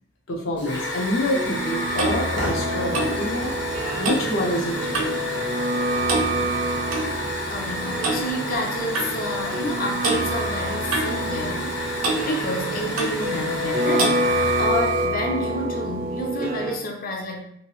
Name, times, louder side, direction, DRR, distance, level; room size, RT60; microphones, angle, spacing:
voice 1, 0.3-3.5 4.0-5.1, left 1 dB, 80° left, -2 dB, 0.8 m, -27 dB
Hiss / Fire, 0.6-15.1, left 1 dB, 60° left, 0.9 m, -31 dB
sound 1, 0.6-16.8, right 1 dB, 45° right, 0.3 m, -27 dB
Clock, 1.4-5.3 5.5-5.8 6.1-7.1 8.0-8.2 8.9-9.1 10.0-10.2 10.9-11.7 12.0-12.3 13.0-13.2 14.0-14.2, right 2 dB, 90° right, 0.6 m, -27 dB
voice 2, 7.5-11.8 12.2-14.2 14.6-17.4, left 1 dB, 45° left, 1 dB, 0.5 m, -29 dB
2.9 x 2.5 x 2.9 m, 0.73 s
head